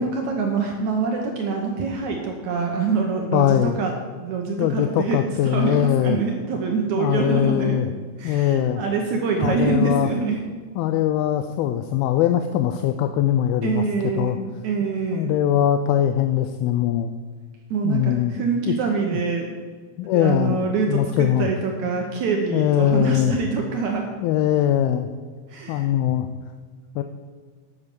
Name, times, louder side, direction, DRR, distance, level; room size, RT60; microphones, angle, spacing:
voice 1, 0.0-3.9 4.2-5.2 5.4-7.8 8.2-10.4 13.6-14.4 14.6-15.3 17.7-19.6 20.1-24.0 25.5-25.9, right 4 dB, 70° right, 2 dB, 1.8 m, -25 dB
voice 2, 3.3-3.8 4.6-6.2 7.0-7.9 8.2-8.8 9.4-10.1 10.8-13.8 14.2-14.4 15.1-17.1 17.8-18.4 18.7-18.8 19.1-19.2 20.0-21.5 22.5-23.4 24.2-25.1 25.7-26.3 27.0-27.1, left 11 dB, 85° left, 8 dB, 2.4 m, -21 dB
8.8 x 8.2 x 6.9 m, 1.5 s
omnidirectional pair, 4.4 m